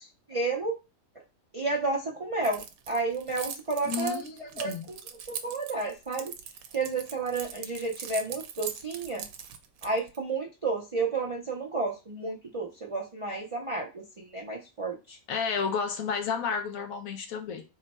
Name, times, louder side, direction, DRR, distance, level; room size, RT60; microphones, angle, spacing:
voice 1, 0.3-0.7 1.5-5.0 5.3-6.3 6.7-9.2 9.8-15.2, right 3 dB, 45° right, 0.4 m, -31 dB
Keys jangling, 2.4-10.2, right 8 dB, 85° right, 1.0 m, -40 dB
voice 2, 3.8-4.9 15.3-17.6, left 6 dB, 80° left, 1.1 m, -31 dB
3.7 x 2.2 x 4.1 m
omnidirectional pair, 1.4 m